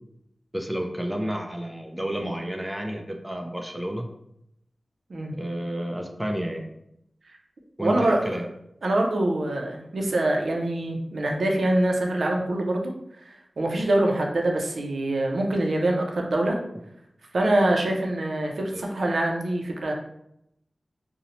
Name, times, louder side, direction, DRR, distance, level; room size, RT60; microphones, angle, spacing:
voice 1, 0.5-4.1 5.4-6.7 7.8-8.5 18.7-18.9, equal, 10° right, 3 dB, 0.3 m, -31 dB
voice 2, 7.8-8.5 8.8-12.9 13.2-16.6 17.3-19.9, right 1 dB, 75° right, 1 dB, 0.4 m, -24 dB
2.6 x 2.0 x 2.8 m, 0.78 s
wide cardioid pair, 95°, 0 cm